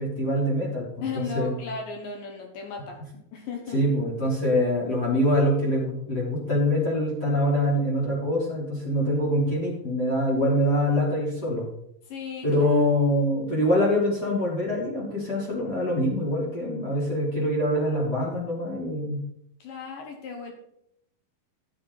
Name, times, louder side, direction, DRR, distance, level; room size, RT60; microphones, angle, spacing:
voice 1, 0.0-1.5 3.7-11.7 12.4-19.2, equal, 20° left, -5 dB, 3.4 m, -24 dB
voice 2, 1.0-3.0 3.3-3.8 12.0-12.8 19.6-20.5, left 5 dB, 70° left, 3 dB, 2.2 m, -36 dB
13.5 x 8.0 x 4.1 m, 0.77 s
omnidirectional pair, 5.6 m